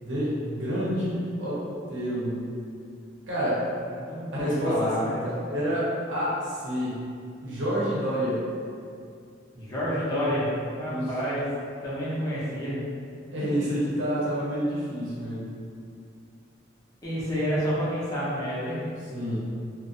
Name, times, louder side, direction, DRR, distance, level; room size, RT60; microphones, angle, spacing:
voice 1, 0.0-2.4 3.3-3.6 4.3-7.0 7.4-8.4 10.9-11.1 13.3-15.5 19.1-19.4, equal, 80° right, -8 dB, 0.8 m, -28 dB
voice 2, 4.0-5.2 9.5-10.5 10.8-11.4 11.8-12.8 17.0-18.8, equal, 20° left, -10 dB, 0.6 m, -29 dB
2.5 x 2.1 x 2.6 m, 2.4 s
head